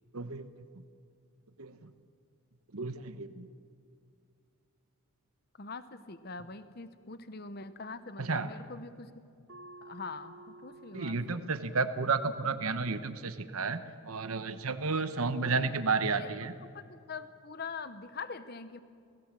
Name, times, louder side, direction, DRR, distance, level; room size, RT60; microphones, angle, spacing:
voice 1, 0.1-0.5 1.6-1.9 2.7-3.5 8.2-8.5 10.9-16.5, right 4 dB, 80° right, 10 dB, 1.0 m, -32 dB
voice 2, 5.6-9.2 9.8-11.5 14.9-15.7 16.2-16.3 16.6-18.8, left 4 dB, 45° left, 12 dB, 0.8 m, -44 dB
sound 1, 9.5-14.6, right 2 dB, 60° right, 2.9 m, -55 dB
29.5 x 16.5 x 7.5 m, 2.3 s
head